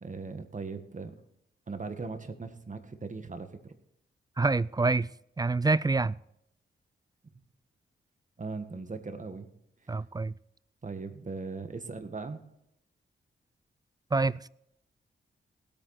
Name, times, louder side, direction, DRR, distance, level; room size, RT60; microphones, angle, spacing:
voice 1, 0.0-1.2 1.7-3.7 8.4-9.5 9.8-10.0 10.8-12.4, right 4 dB, 40° right, 1.7 m, -39 dB
voice 2, 4.4-5.1 5.4-6.2 9.9-10.3 14.1-14.5, right 3 dB, 20° right, 0.4 m, -26 dB
18.5 x 8.9 x 4.3 m
cardioid pair, 60°, 21 cm